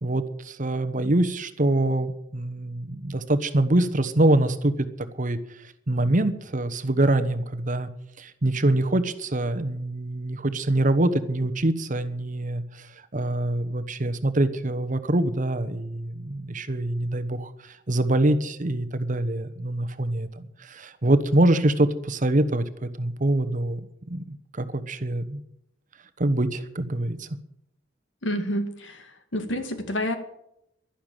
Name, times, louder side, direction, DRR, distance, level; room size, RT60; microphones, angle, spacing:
voice 1, 0.0-4.7 5.2-5.4 5.9-7.9 8.2-12.9 13.1-24.2 24.5-25.4 26.2-27.3, right 1 dB, 45° right, 11 dB, 1.1 m, -24 dB
voice 2, 28.2-30.2, equal, 80° left, 7 dB, 2.2 m, -29 dB
11.5 x 11.5 x 9.1 m, 0.79 s
head